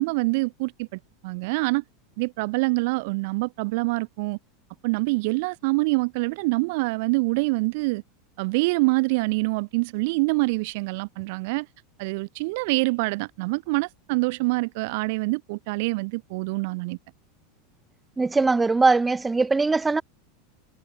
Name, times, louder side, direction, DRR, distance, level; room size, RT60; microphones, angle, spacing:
voice 1, 0.0-1.8 2.2-4.4 4.8-8.0 8.4-11.7 12.0-17.0, right 26 dB, 60° right, 3.0 m, -25 dB
voice 2, 18.2-20.0, right 3 dB, 15° right, 7.4 m, -21 dB
hypercardioid pair, 90°, 0 cm